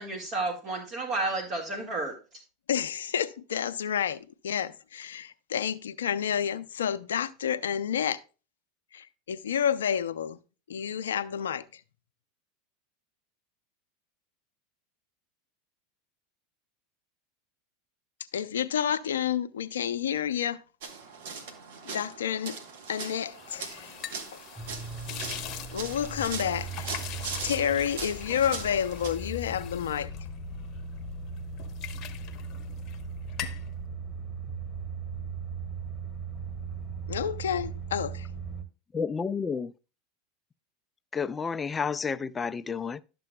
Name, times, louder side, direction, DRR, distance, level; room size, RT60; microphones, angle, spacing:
voice 1, 0.0-2.1, right 2 dB, 45° right, 1.7 m, -31 dB
voice 2, 2.7-8.2 8.9-10.4 10.7-11.8 18.3-20.6 21.8-22.6 22.9-23.9 24.3-24.4 25.7-26.9 27.4-30.1 37.1-38.3, left 8 dB, 90° left, 0.4 m, -30 dB
sound 1, 20.8-29.1, right 5 dB, 75° right, 1.3 m, -40 dB
sound 2, 23.2-31.0 31.4-33.0 33.3-33.7, left 10 dB, 45° left, 0.8 m, -42 dB
sound 3, 24.6-38.6, right 4 dB, 5° left, 1.4 m, -38 dB
voice 3, 38.9-39.7 41.1-43.0, left 5 dB, 20° left, 0.3 m, -30 dB
11.5 x 6.8 x 2.2 m
hypercardioid pair, 100°, 0 cm